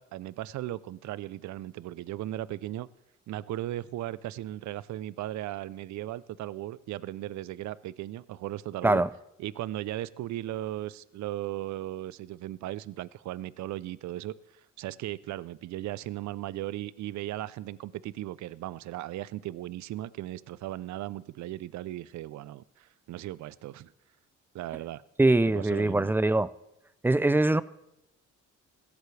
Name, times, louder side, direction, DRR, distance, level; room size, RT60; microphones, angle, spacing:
voice 1, 0.0-2.9 3.3-9.0 9.4-14.3 14.8-23.9 24.5-25.0 25.4-26.1, right 14 dB, 70° right, 0.5 m, -37 dB
voice 2, 25.2-26.5 27.0-27.6, right 2 dB, 5° right, 0.3 m, -23 dB
17.0 x 13.0 x 3.2 m
cardioid pair, 90°, 30 cm